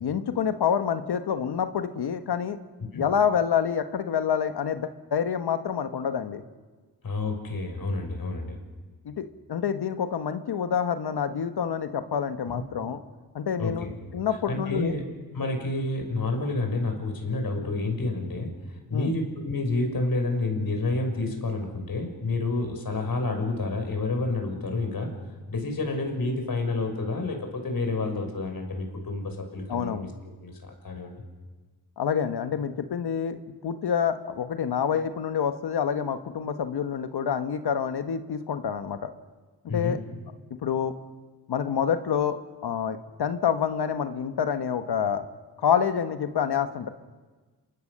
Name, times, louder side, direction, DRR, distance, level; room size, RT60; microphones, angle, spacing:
voice 1, 0.0-2.6 2.9-6.4 9.0-13.0 13.3-13.9 14.1-14.9 18.9-19.1 29.7-30.1 32.0-33.4 33.6-39.1 39.6-40.0 40.6-40.9 41.5-45.3 45.6-46.9, left 7 dB, 80° left, 9 dB, 1.6 m, -27 dB
voice 2, 7.0-8.6 12.5-12.6 13.6-13.9 14.5-15.0 15.3-25.1 25.5-30.1 30.4-31.2 39.7-40.0, left 2 dB, 60° left, 4 dB, 6.1 m, -29 dB
27.5 x 24.0 x 6.8 m, 1.3 s
cardioid pair, 50°, 39 cm